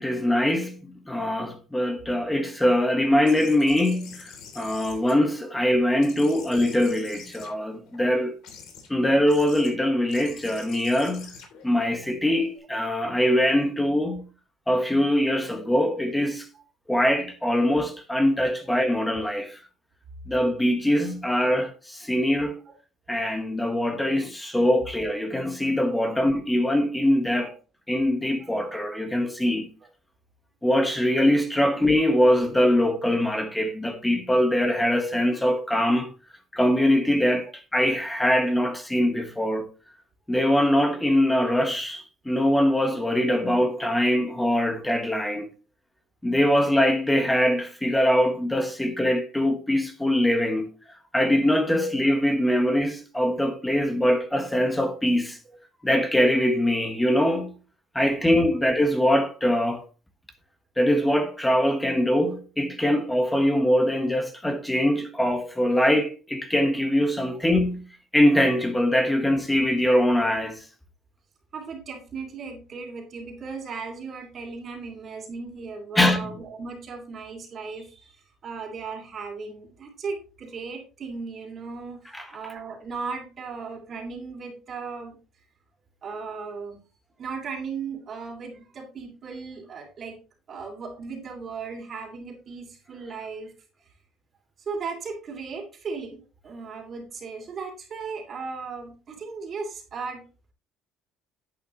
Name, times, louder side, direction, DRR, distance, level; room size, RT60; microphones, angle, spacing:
voice 1, 0.0-8.4 8.9-11.3 11.6-14.3 14.7-16.5 16.9-19.6 20.3-22.6 23.1-27.5 27.9-29.7 30.6-36.1 36.5-39.7 40.3-45.5 46.2-55.4 55.8-57.5 57.9-59.8 60.8-70.6 75.9-76.3 82.1-82.3, left 1 dB, 5° left, 1.4 m, -23 dB
sound 1, 3.2-5.7 6.0-8.0 8.4-8.9 9.3-9.7 10.1-12.6, left 6 dB, 70° left, 3.2 m, -46 dB
voice 2, 71.5-85.2 86.0-86.8 87.2-90.2 90.5-93.5 94.6-100.3, right 5 dB, 40° right, 2.7 m, -36 dB
10.5 x 8.4 x 3.1 m
cardioid pair, 135°, 0 cm